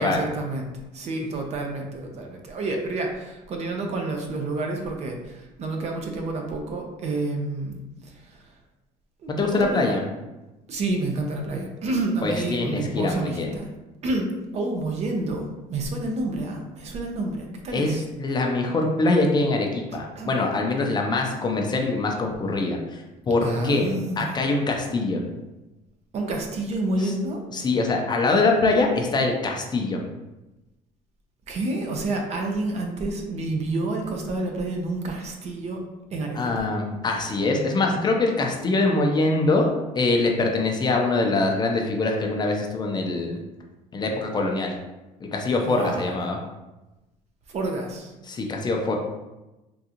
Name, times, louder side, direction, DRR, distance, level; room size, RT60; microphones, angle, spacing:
voice 1, 0.0-7.8 8.0-8.5 9.2-10.0 10.7-13.7 14.0-18.0 19.9-20.4 23.4-24.3 26.1-27.4 31.5-35.8 36.1-36.7 45.6-46.2 47.5-48.1, right 2 dB, 50° right, 2 dB, 0.6 m, -29 dB
voice 2, 9.3-10.0 12.2-13.6 17.7-23.9 24.2-25.2 27.0-27.1 27.5-30.0 36.3-43.4 43.9-44.7 45.2-46.4 48.2-49.0, left 2 dB, 30° left, 1 dB, 0.5 m, -23 dB
3.6 x 2.4 x 2.8 m, 1.0 s
cardioid pair, 100°, 15 cm